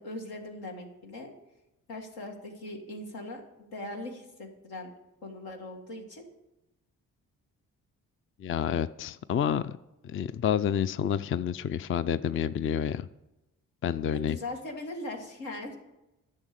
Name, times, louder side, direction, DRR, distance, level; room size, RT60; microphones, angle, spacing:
voice 1, 0.0-1.3 1.9-4.9 5.2-6.2 14.1-15.8, left 1 dB, 85° left, 2 dB, 1.8 m, -40 dB
voice 2, 8.4-9.8 10.0-13.1 13.8-14.4, left 8 dB, 35° left, 15 dB, 0.4 m, -29 dB
10.5 x 6.5 x 6.6 m, 0.97 s
supercardioid pair, 50°, 36 cm